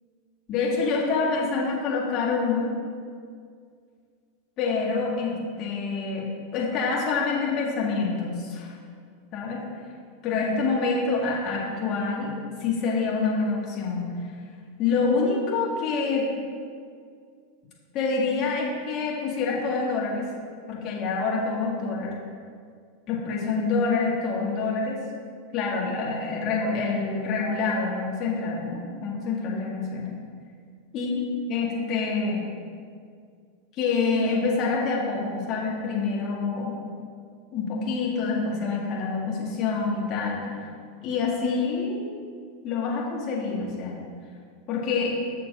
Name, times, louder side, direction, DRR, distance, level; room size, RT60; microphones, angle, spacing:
voice 1, 0.5-2.7 4.6-8.7 9.3-9.6 10.2-12.3 12.6-14.1 14.8-16.3 17.9-20.3 20.7-22.1 23.1-25.0 25.5-30.2 30.9-32.4 33.8-36.8 37.5-40.6 41.0-42.0 42.6-44.0 44.7-45.2, left 4 dB, 40° left, -4 dB, 2.0 m, -26 dB
6.8 x 4.6 x 6.3 m, 2.2 s
figure-of-eight pair, 85°, 0 cm